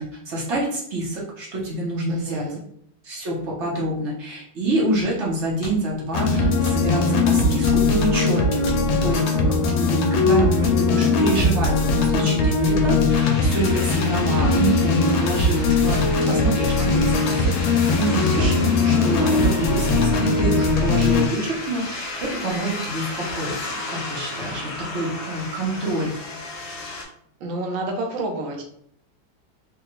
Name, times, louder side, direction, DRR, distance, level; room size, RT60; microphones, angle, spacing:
voice 1, 0.0-2.5 3.0-8.7 9.0-9.4 9.6-17.5 17.9-26.1, right 1 dB, 50° right, -4 dB, 0.9 m, -27 dB
voice 2, 2.1-2.6 27.4-28.6, right 2 dB, 75° right, 2 dB, 1.4 m, -29 dB
sound 1, 5.6-6.0 6.6-6.9 7.6-8.1 8.7-8.9 9.7-9.9 10.1-10.2 10.6-11.1 11.6-11.8 12.6-13.1 13.6-14.2 14.5-15.3 15.7-16.5 16.8-16.9 17.3-17.4, left 1 dB, 35° left, 0.9 m, -39 dB
sound 2, 6.1-21.3, left 3 dB, 80° left, 1.4 m, -20 dB
sound 3, 13.1-27.0, left 2 dB, 60° left, 0.9 m, -33 dB
3.7 x 2.2 x 2.9 m, 0.67 s
omnidirectional pair, 2.2 m